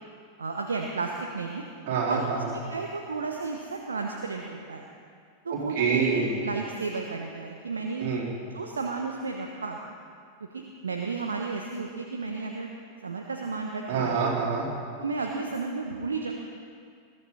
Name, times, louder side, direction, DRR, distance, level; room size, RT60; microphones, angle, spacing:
voice 1, 0.4-1.6 2.1-2.2 2.5-4.9 5.4-8.1 8.5-9.8 10.5-12.7 13.0-14.2 15.0-16.3, right 4 dB, 70° right, 2 dB, 1.1 m, -33 dB
voice 2, 1.9-2.5 5.5-6.3 8.0-8.3 13.9-14.7, right 5 dB, 55° right, -4 dB, 4.0 m, -26 dB
21.0 x 14.0 x 4.2 m, 2.2 s
figure-of-eight pair, 90°, 0 cm